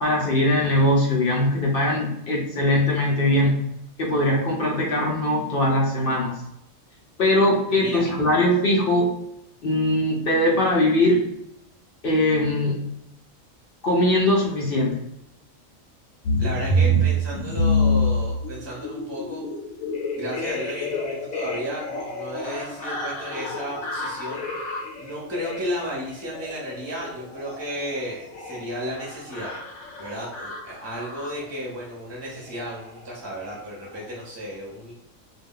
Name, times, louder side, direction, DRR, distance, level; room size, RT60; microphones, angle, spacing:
voice 1, 0.0-3.6 4.0-6.3 7.2-9.1 9.6-11.2 12.0-12.8 13.8-15.0, left 1 dB, 60° left, -2 dB, 0.6 m, -21 dB
sound 1, 16.2-31.6 32.4-32.6 32.9-33.1 33.4-33.6 33.9-34.1, equal, 75° left, 1.0 m, -28 dB
voice 2, 16.4-19.4 20.1-24.4 25.0-29.5 30.0-34.9, equal, 15° right, -4 dB, 0.5 m, -33 dB
2.3 x 2.2 x 3.5 m, 0.79 s
omnidirectional pair, 1.4 m